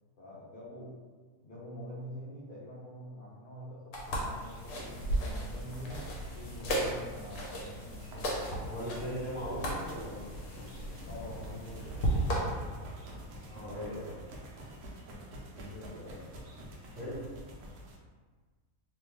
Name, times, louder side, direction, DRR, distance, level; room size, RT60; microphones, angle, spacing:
voice 1, 0.2-0.9 1.4-8.4 11.1-12.7 15.5-16.4, equal, 55° left, -8 dB, 0.6 m, -46 dB
sound 1, 3.9-12.4, right 1 dB, 75° left, 1.1 m, -35 dB
sound 2, 4.3-18.0, equal, 80° right, 1.1 m, -48 dB
voice 2, 8.6-10.3 13.4-14.1 16.9-17.2, equal, 30° right, -12 dB, 1.3 m, -38 dB
3.0 x 2.2 x 3.2 m, 1.5 s
omnidirectional pair, 1.6 m